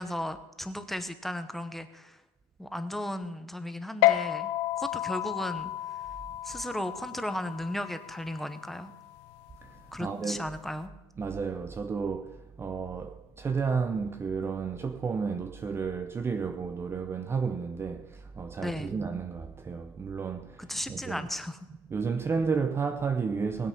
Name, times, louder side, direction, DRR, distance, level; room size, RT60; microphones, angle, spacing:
voice 1, 0.0-2.2 2.6-4.5 4.8-5.7 6.4-8.9 9.9-10.9 18.6-18.9 20.6-21.6, left 1 dB, ahead, 1.0 m, -35 dB
sound 1, 4.0-10.8, left 15 dB, 70° left, 0.9 m, -32 dB
voice 2, 9.6-10.6 11.2-21.3 21.7-23.7, right 5 dB, 20° right, 0.6 m, -32 dB
20.0 x 7.9 x 5.7 m
cardioid pair, 140°, 13 cm